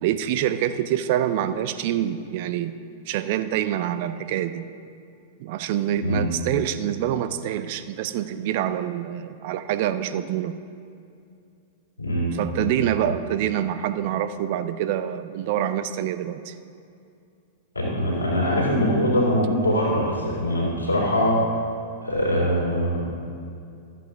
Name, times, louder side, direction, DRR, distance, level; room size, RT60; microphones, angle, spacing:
voice 1, 0.0-2.7 3.1-4.7 5.4-10.6 12.3-16.6, right 11 dB, 45° right, 11 dB, 0.4 m, -26 dB
voice 2, 12.0-12.3 12.6-12.7 17.7-21.4 22.0-23.0, equal, 80° left, -5 dB, 2.8 m, -22 dB
13.0 x 8.2 x 3.6 m, 2.5 s
figure-of-eight pair, 95°, 0 cm